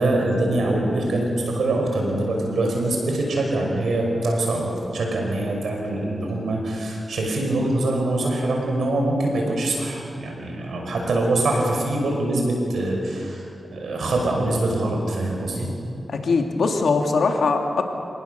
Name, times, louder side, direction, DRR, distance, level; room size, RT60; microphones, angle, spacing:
voice 1, 0.0-13.4 13.7-15.7, right 2 dB, 85° right, 0 dB, 5.7 m, -24 dB
voice 2, 16.1-17.8, left 4 dB, 80° left, 3 dB, 2.2 m, -21 dB
27.5 x 18.5 x 6.9 m, 2.7 s
cardioid pair, 50°, 0 cm